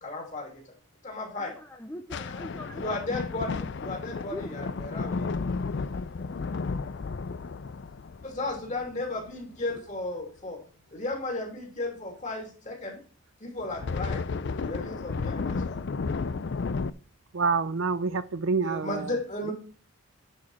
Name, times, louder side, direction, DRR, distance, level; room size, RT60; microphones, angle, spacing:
voice 1, 0.0-0.7 1.0-1.6 2.7-5.5 8.2-10.6 10.9-13.0 13.4-14.2 14.6-15.8 18.6-19.5, left 2 dB, 35° left, 3.0 m, -35 dB
voice 2, 1.3-3.8 4.2-4.6, equal, 10° left, 0.6 m, -42 dB
sound 1, 2.1-9.8 13.6-16.9, left 4 dB, 50° left, 0.4 m, -33 dB
voice 3, 17.3-19.1, right 4 dB, 60° right, 0.5 m, -27 dB
10.5 x 4.9 x 4.2 m
head